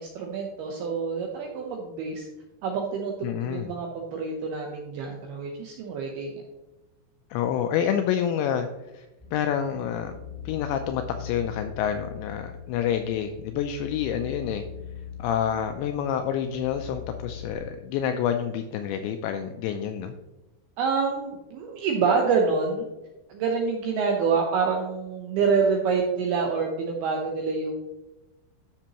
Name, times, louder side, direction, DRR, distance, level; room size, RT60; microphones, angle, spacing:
voice 1, 0.0-2.3 2.6-6.4 20.8-22.9 23.3-27.7, right 5 dB, 80° right, 1 dB, 2.3 m, -27 dB
voice 2, 3.2-3.7 7.3-8.7 8.9-10.1 10.5-14.6 15.2-20.1, left 9 dB, 85° left, 6 dB, 2.5 m, -28 dB
sound 1, 9.2-17.6, left 8 dB, 65° right, 4.8 m, -41 dB
12.0 x 6.9 x 2.9 m, 1.0 s
omnidirectional pair, 5.6 m